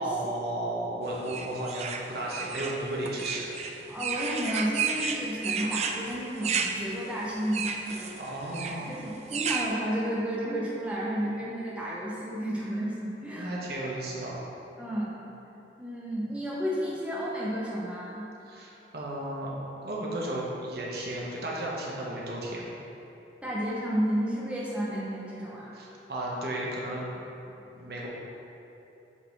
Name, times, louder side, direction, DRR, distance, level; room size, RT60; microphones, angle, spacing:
voice 1, 0.0-3.5 8.2-9.0 13.3-14.4 18.5-19.5 19.8-22.7 25.7-27.1 27.5-28.1, right 1 dB, 60° right, -4 dB, 1.1 m, -34 dB
sound 1, 1.3-9.7, right 6 dB, 35° right, 0.3 m, -32 dB
voice 2, 3.9-13.6 14.8-15.2 15.8-18.2 23.4-25.7, equal, 5° right, -7 dB, 0.8 m, -32 dB
7.3 x 3.9 x 4.0 m, 2.9 s
head